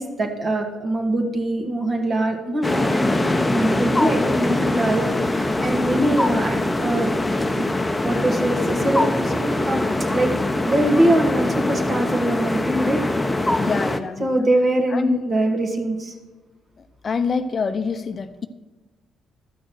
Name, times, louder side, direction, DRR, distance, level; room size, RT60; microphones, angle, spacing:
voice 1, 0.0-7.6 8.0-9.8 10.1-10.3 10.7-13.0 14.2-16.1, right 1 dB, 40° right, 2 dB, 2.1 m, -23 dB
sound 1, 2.6-14.0, left 2 dB, 15° left, 0.8 m, -22 dB
voice 2, 13.6-14.5 14.9-15.2 17.0-18.5, left 5 dB, 45° left, 10 dB, 0.7 m, -26 dB
12.0 x 6.3 x 6.2 m, 1.2 s
hypercardioid pair, 55°, 0 cm